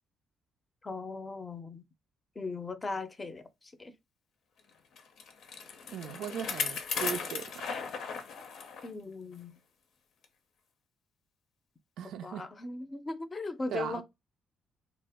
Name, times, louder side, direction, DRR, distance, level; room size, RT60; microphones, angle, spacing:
voice 1, 0.8-1.8 2.4-3.9 8.8-9.6 12.0-14.0, left 3 dB, 25° left, 0.5 m, -38 dB
Bicycle, 5.0-8.9 9.3-9.4 10.2-10.3, left 5 dB, 75° left, 0.6 m, -36 dB
voice 2, 5.9-7.8 12.0-12.5 13.7-14.0, right 8 dB, 80° right, 0.4 m, -38 dB
2.8 x 2.0 x 3.4 m
cardioid pair, 90°, 0 cm